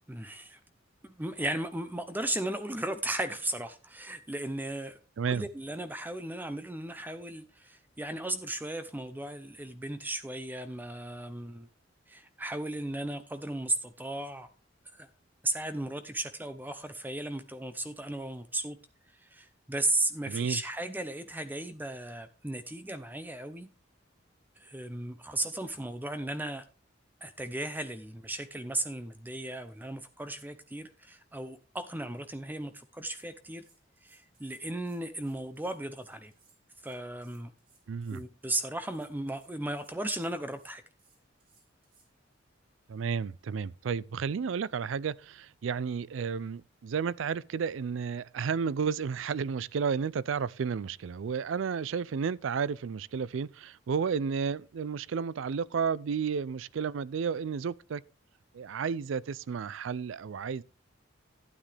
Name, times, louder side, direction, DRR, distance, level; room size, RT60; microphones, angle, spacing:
voice 1, 0.1-0.6 1.0-5.0 5.3-11.7 12.1-14.5 14.9-15.1 15.4-18.8 19.2-23.7 24.6-26.6 27.2-33.6 34.0-36.3 36.8-37.5 38.1-40.8, right 1 dB, 10° right, 0.6 m, -36 dB
voice 2, 20.3-20.6 37.9-38.2 42.9-58.0 58.5-60.6, right 6 dB, 75° right, 0.4 m, -32 dB
sound 1, 33.1-42.1, right 4 dB, 50° right, 3.8 m, -66 dB
12.0 x 9.7 x 3.3 m
head